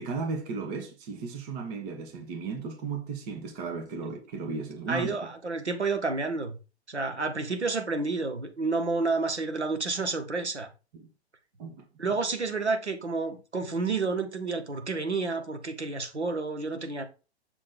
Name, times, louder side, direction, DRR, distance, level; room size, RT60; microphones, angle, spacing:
voice 1, 0.0-5.3 10.9-11.1 11.6-11.8, right 4 dB, 35° right, 1.4 m, -35 dB
voice 2, 4.9-6.6 6.9-10.7 12.0-17.0, right 3 dB, 85° right, 1.1 m, -30 dB
6.5 x 3.8 x 3.8 m
figure-of-eight pair, 105°, 33 cm